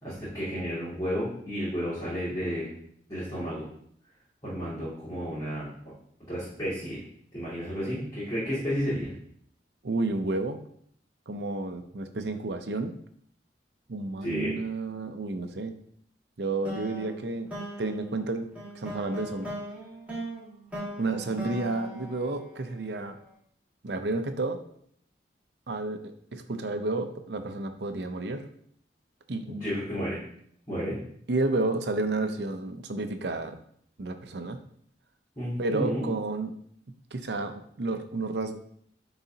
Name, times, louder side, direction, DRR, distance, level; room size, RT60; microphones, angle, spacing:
voice 1, 0.0-2.7 3.1-3.7 4.4-5.7 6.3-7.0 7.3-9.1 14.2-14.5 29.5-30.2 30.7-31.0 35.4-36.1, equal, 25° left, -11 dB, 2.3 m, -32 dB
voice 2, 9.8-10.6 11.3-12.9 13.9-15.7 16.4-17.5 17.8-18.5 18.7-19.5 21.0-23.1 23.8-24.6 25.7-28.5 29.3-29.6 31.3-33.6 34.0-34.6 35.6-36.5 37.1-38.6, right 2 dB, 65° right, 7 dB, 0.7 m, -31 dB
sound 1, 16.6-23.1, right 1 dB, 10° right, 2.0 m, -40 dB
9.6 x 4.0 x 2.8 m, 0.66 s
head